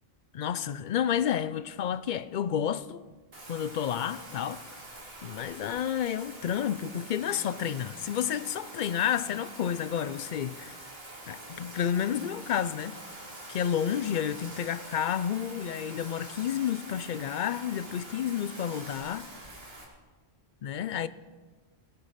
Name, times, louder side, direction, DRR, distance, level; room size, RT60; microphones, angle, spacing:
voice 1, 0.3-3.0 3.5-4.6 5.2-10.8 11.3-13.0 13.5-19.3 20.6-21.1, left 9 dB, 60° left, 0.5 m, -30 dB
Bathtub (filling or washing), 3.3-19.8, right 1 dB, 60° right, 2.4 m, -45 dB
17.0 x 9.4 x 5.7 m
omnidirectional pair, 1.1 m